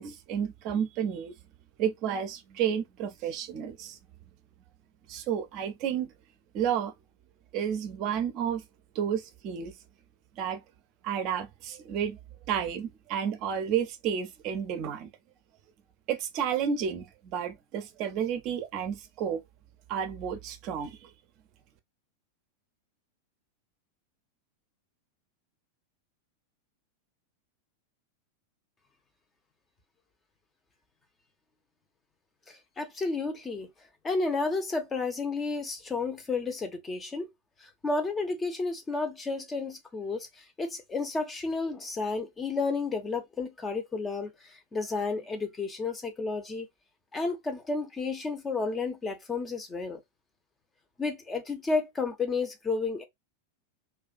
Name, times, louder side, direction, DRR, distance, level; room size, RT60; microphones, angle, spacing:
voice 1, 0.0-1.3 1.8-4.0 5.1-6.1 6.5-6.9 7.5-8.6 8.9-9.7 10.4-10.6 11.0-12.2 12.5-15.1 16.1-19.4 19.9-21.1, right 8 dB, 40° right, 0.5 m, -31 dB
voice 2, 32.5-33.7 34.0-37.3 37.6-46.7 47.1-50.0 51.0-53.0, left 3 dB, 15° left, 0.6 m, -32 dB
2.4 x 2.2 x 2.4 m
figure-of-eight pair, 90°, 0 cm